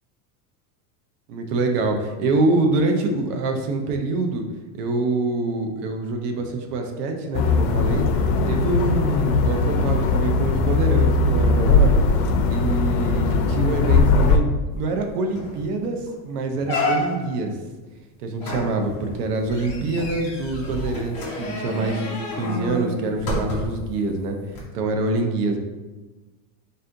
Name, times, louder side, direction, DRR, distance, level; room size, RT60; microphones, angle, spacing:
voice 1, 1.3-4.4 4.7-8.1 8.4-11.9 12.5-14.5 14.7-17.6 18.2-24.4 24.7-25.6, right 2 dB, 65° right, 4 dB, 0.7 m, -25 dB
sound 1, 7.3-14.4, left 3 dB, 75° left, 0.6 m, -19 dB
sound 2, 14.9-15.0 15.3-15.7 16.1-16.2 16.6-17.4 18.4-23.9 24.5-24.6, left 1 dB, 25° left, 0.3 m, -29 dB
4.1 x 2.6 x 3.7 m, 1.2 s
supercardioid pair, 180°, 49 cm